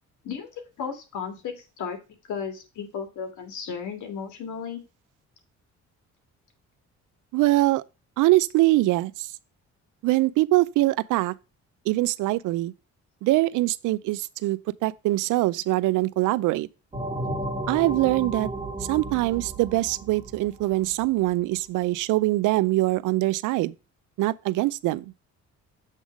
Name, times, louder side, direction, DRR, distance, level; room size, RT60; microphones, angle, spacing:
voice 1, 0.2-2.0 2.3-4.8, left 6 dB, 75° left, 2.0 m, -34 dB
voice 2, 7.3-7.8 8.2-9.3 10.0-11.3 11.9-12.7 13.2-16.7 17.7-18.5 18.9-23.7 24.2-25.0, right 18 dB, 85° right, 0.5 m, -23 dB
sound 1, 16.9-21.3, right 1 dB, 20° right, 1.8 m, -33 dB
7.3 x 3.6 x 6.0 m
cardioid pair, 90°, 30 cm